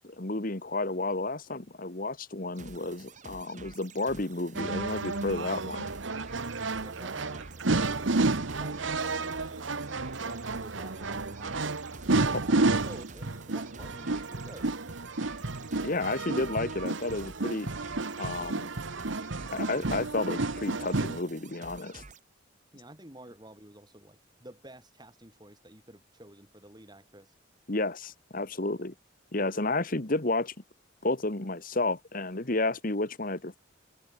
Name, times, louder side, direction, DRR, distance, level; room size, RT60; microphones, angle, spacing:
voice 1, 0.0-5.9 12.3-12.4 15.8-17.7 18.2-18.7 19.5-22.0 27.7-28.9 29.3-30.5 31.0-33.6, left 2 dB, 45° left, 1.6 m, -31 dB
sound 1, 2.5-22.2, right 4 dB, 40° right, 1.5 m, -50 dB
sound 2, 4.5-21.2, right 3 dB, 70° right, 1.3 m, -31 dB
voice 2, 6.8-11.7 12.1-14.7 22.7-27.3, right 1 dB, 20° right, 5.6 m, -50 dB
head